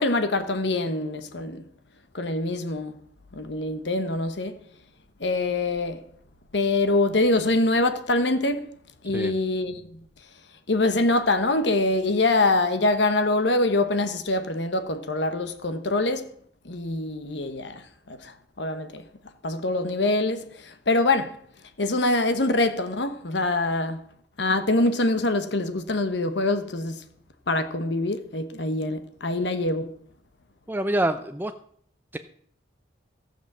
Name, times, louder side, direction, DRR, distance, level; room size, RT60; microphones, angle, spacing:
voice 1, 0.0-1.6 2.1-3.0 3.3-4.6 5.2-6.0 6.5-8.7 9.0-10.0 10.7-16.3 16.6-19.0 19.4-21.4 21.8-24.0 24.4-27.0 27.5-29.9, left 2 dB, 70° left, 1.1 m, -24 dB
voice 2, 30.7-31.5 32.1-32.2, right 1 dB, 10° right, 0.5 m, -26 dB
14.0 x 7.3 x 7.4 m
head